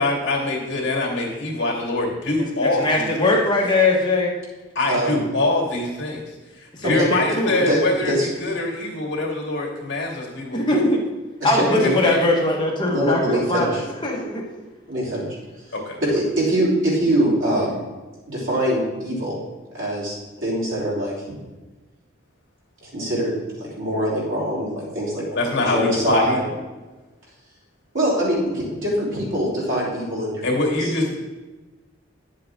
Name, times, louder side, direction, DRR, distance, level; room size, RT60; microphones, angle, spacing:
voice 1, 0.0-3.4 4.7-6.2 6.5-10.9 11.7-12.2 15.7-16.0 25.3-26.4 30.4-31.2, left 2 dB, 60° left, -1 dB, 2.6 m, -24 dB
voice 2, 2.6-4.3 6.8-7.6 10.5-11.0 11.4-14.4, left 2 dB, 25° left, -2 dB, 1.3 m, -21 dB
voice 3, 4.9-5.2 7.7-8.3 11.4-11.9 12.9-13.8 14.9-15.2 16.0-17.9 18.3-19.4 19.7-20.2 20.4-21.1 22.8-25.2 25.7-26.4 27.9-30.4 30.8-30.9, equal, 75° right, -5 dB, 3.6 m, -23 dB
10.5 x 7.7 x 3.7 m, 1.2 s
head